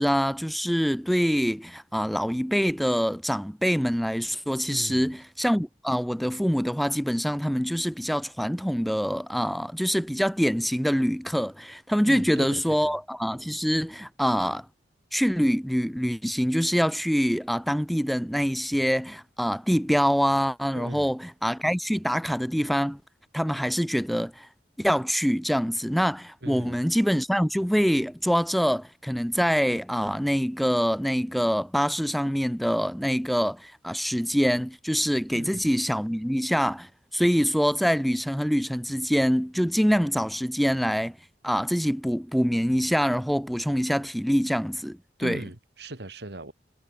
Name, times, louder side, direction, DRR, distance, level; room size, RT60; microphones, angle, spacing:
voice 1, 0.0-14.7 15.1-23.0 23.3-24.5 24.8-41.2 41.4-45.4, equal, ahead, 0.8 m, -25 dB
voice 2, 4.7-5.2 12.0-13.0 20.7-21.1 26.4-26.8 35.3-35.6 45.2-46.5, right 1 dB, 65° right, 2.0 m, -39 dB
head